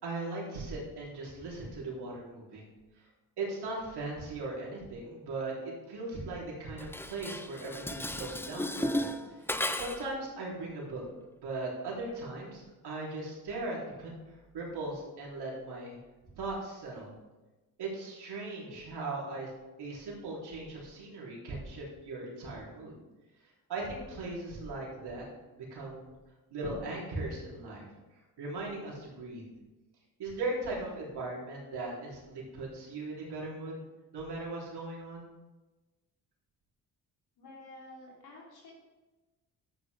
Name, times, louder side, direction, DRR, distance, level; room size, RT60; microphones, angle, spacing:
voice 1, 0.0-2.7 2.9-3.1 3.4-9.4 9.7-11.0 11.4-16.0 16.3-17.1 17.8-19.5 19.8-22.9 23.7-25.2 25.5-26.1 26.5-27.8 28.4-29.4 30.2-33.8 34.1-35.3, right 2 dB, 75° right, -4 dB, 3.5 m, -38 dB
Dishes pots and pans, 6.8-10.2, left 1 dB, 5° left, 0.5 m, -35 dB
voice 2, 37.4-38.7, left 2 dB, 70° left, -4 dB, 3.3 m, -50 dB
11.5 x 8.3 x 3.4 m, 1.2 s
cardioid pair, 75°, 40 cm